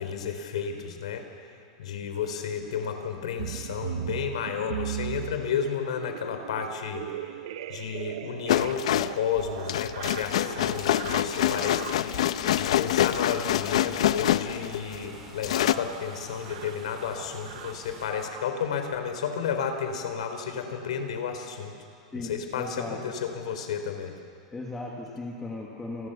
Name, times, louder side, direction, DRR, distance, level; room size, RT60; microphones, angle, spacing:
voice 1, 0.0-21.7 22.1-24.1, left 7 dB, 90° left, 6 dB, 4.1 m, -32 dB
sound 1, 3.4-18.8 19.5-19.8 20.0-20.3 20.5-20.7 21.0-21.2, right 12 dB, 65° right, 0.8 m, -40 dB
sound 2, 8.5-15.1 15.4-15.7, left 12 dB, 75° left, 0.8 m, -26 dB
sound 3, 10.5-18.1, right 2 dB, 15° right, 4.6 m, -48 dB
voice 2, 22.5-23.0 24.5-26.1, left 2 dB, 10° left, -2 dB, 1.9 m, -36 dB
29.0 x 22.5 x 6.9 m, 2.3 s
supercardioid pair, 175°, 3 cm